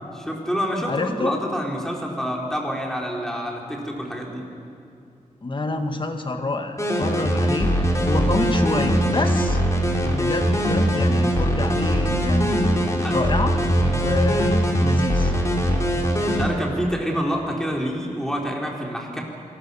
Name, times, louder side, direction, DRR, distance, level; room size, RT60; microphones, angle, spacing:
voice 1, 0.1-4.4 13.0-13.2 16.2-19.2, equal, 5° left, -1 dB, 4.2 m, -27 dB
voice 2, 0.9-1.3 5.4-9.6 10.1-15.3, left 2 dB, 40° left, 6 dB, 1.8 m, -27 dB
sound 1, 6.8-16.5, equal, 25° left, 3.4 m, -21 dB
26.5 x 19.5 x 7.0 m, 2.6 s
wide cardioid pair, 110°, 13 cm